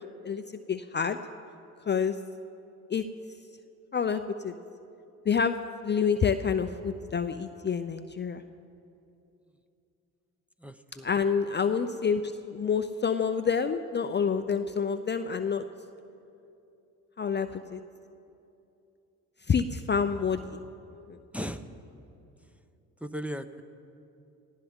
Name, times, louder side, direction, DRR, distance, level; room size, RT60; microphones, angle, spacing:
voice 1, 0.7-1.2 1.9-2.2 2.9-3.0 3.9-4.5 5.3-5.6 5.8-8.4 11.0-15.6 17.2-17.8 19.5-20.6 21.1-21.2, left 6 dB, 30° left, 9 dB, 0.6 m, -28 dB
voice 2, 10.6-11.1 21.3-21.7 23.0-23.6, equal, 5° right, 7 dB, 0.8 m, -37 dB
18.0 x 16.0 x 3.7 m, 2.7 s
hypercardioid pair, 50°, 37 cm